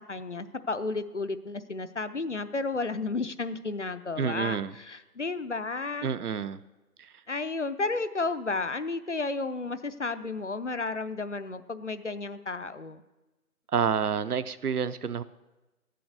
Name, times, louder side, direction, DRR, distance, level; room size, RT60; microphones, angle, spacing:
voice 1, 0.1-6.1 7.3-13.0, left 3 dB, 50° left, 13 dB, 0.6 m, -32 dB
voice 2, 4.2-4.7 6.0-6.6 13.7-15.2, right 7 dB, 75° right, 14 dB, 0.7 m, -28 dB
12.5 x 7.7 x 6.5 m, 1.1 s
figure-of-eight pair, 170°, 46 cm